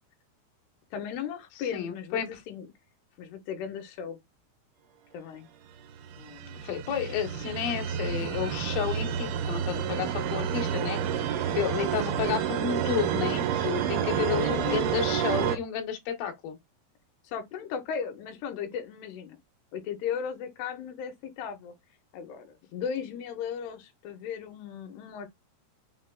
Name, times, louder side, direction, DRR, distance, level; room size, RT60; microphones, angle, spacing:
voice 1, 0.9-2.7 3.2-4.2 5.1-5.5 6.2-6.6 14.5-14.9 17.2-19.4 19.7-21.7 22.1-25.3, left 7 dB, 90° left, 2.7 m, -36 dB
voice 2, 1.7-2.4 6.6-16.6, left 9 dB, 70° left, 2.6 m, -32 dB
sound 1, 5.9-15.6, right 9 dB, 80° right, 2.5 m, -29 dB
6.0 x 3.1 x 2.2 m
omnidirectional pair, 4.7 m